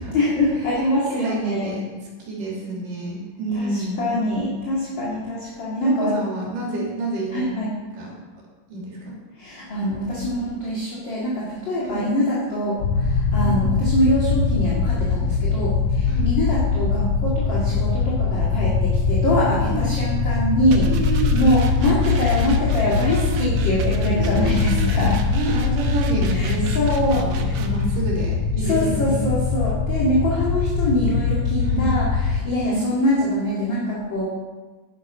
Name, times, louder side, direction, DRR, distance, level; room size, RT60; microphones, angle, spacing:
voice 1, 0.1-1.7 3.5-6.1 7.3-7.7 9.4-25.2 26.3-26.5 26.7-27.5 28.6-34.2, equal, 40° left, -6 dB, 2.6 m, -24 dB
voice 2, 1.1-1.8 2.3-4.1 5.8-7.5 7.9-8.1 8.7-9.1 11.8-12.1 13.4-13.8 16.1-16.3 19.6-20.0 20.8-21.5 23.0-23.6 24.1-24.9 25.3-26.8 27.1-29.2 31.6-31.9 32.6-32.9, right 2 dB, 85° right, -3 dB, 4.5 m, -28 dB
sound 1, 12.8-32.4, left 5 dB, 70° left, 2.2 m, -22 dB
sound 2, 20.7-27.8, right 4 dB, 65° right, 1.4 m, -33 dB
11.0 x 10.0 x 5.6 m, 1.3 s
omnidirectional pair, 3.7 m